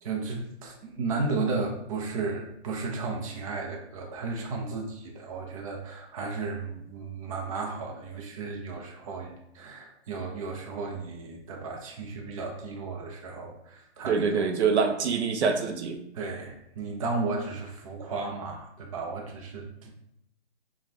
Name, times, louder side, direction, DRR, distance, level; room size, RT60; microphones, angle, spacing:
voice 1, 0.0-14.4 16.1-19.9, right 3 dB, 30° right, 0 dB, 0.6 m, -34 dB
voice 2, 14.1-16.0, right 5 dB, 80° right, 5 dB, 0.6 m, -25 dB
5.9 x 2.3 x 2.7 m, 0.77 s
hypercardioid pair, 150°, 34 cm